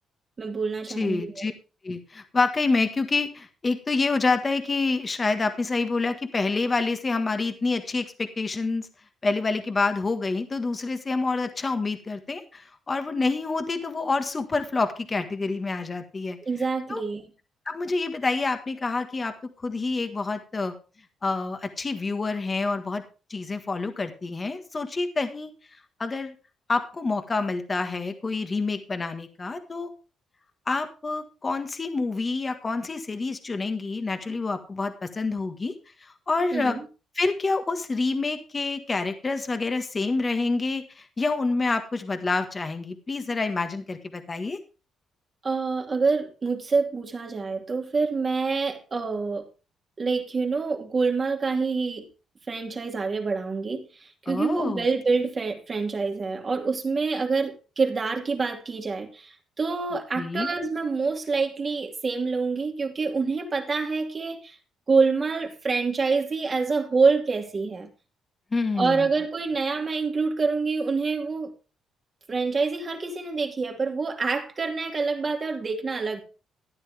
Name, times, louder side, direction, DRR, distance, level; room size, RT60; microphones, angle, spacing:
voice 1, 0.4-1.3 16.5-17.2 36.5-36.7 45.4-49.5 50.0-52.1 52.5-64.6 64.9-67.9 68.8-71.5 72.3-76.2, right 4 dB, 35° right, 3 dB, 2.5 m, -26 dB
voice 2, 0.9-1.5 1.8-8.9 9.2-16.4 16.9-17.0 17.6-20.7 21.2-23.0 23.3-25.5 26.0-26.3 26.7-29.9 30.7-35.7 36.0-36.8 37.1-44.6 54.3-54.9 60.1-60.5 68.5-69.1, left 3 dB, 30° left, 8 dB, 1.5 m, -27 dB
13.0 x 10.0 x 3.5 m, 0.33 s
cardioid pair, 90°, 0 cm